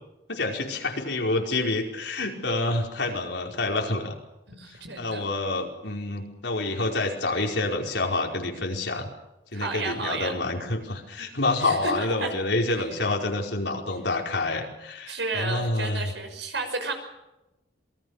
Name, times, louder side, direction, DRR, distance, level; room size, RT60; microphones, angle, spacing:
voice 1, 0.3-4.2 5.0-9.1 9.5-16.1, left 2 dB, 80° left, 1 dB, 5.0 m, -28 dB
voice 2, 4.5-5.2 9.5-10.4 11.6-12.3 15.1-16.9, right 3 dB, 80° right, 6 dB, 6.1 m, -32 dB
27.0 x 20.5 x 6.6 m, 0.96 s
head